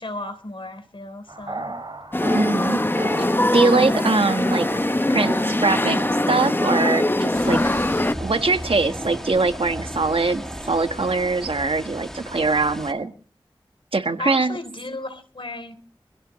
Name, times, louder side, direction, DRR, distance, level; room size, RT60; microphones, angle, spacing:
voice 1, 0.0-1.8 14.2-15.7, left 2 dB, 70° left, 9 dB, 3.5 m, -34 dB
sound 1, 1.3-11.4, right 2 dB, 50° right, 6.5 m, -37 dB
sound 2, 2.1-8.2, left 1 dB, 25° left, 0.8 m, -22 dB
voice 2, 2.3-2.8 3.5-4.7 5.1-6.0 6.3-7.6 8.2-13.1 13.9-14.6, right 3 dB, 80° right, 8 dB, 1.5 m, -22 dB
sound 3, 7.3-12.9, equal, 5° left, 2.4 m, -35 dB
24.5 x 16.5 x 3.2 m, 0.37 s
wide cardioid pair, 55°, 9 cm